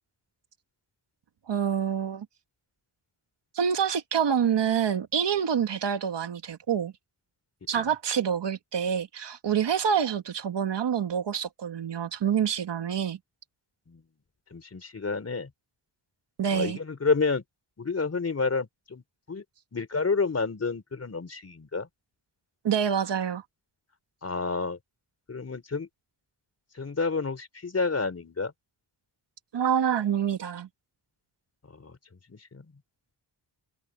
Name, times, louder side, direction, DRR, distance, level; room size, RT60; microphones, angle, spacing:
voice 1, 1.5-2.3 3.5-6.9 7.7-13.2 16.4-16.8 22.6-23.4 29.5-30.7, right 8 dB, 80° right, 1.9 m, -27 dB
voice 2, 14.5-15.5 16.5-17.4 17.8-19.4 19.7-21.9 24.2-24.8 25.3-25.9 26.7-28.5 31.7-32.0 32.3-32.7, left 4 dB, 35° left, 4.0 m, -29 dB
wide cardioid pair, 145°, 42 cm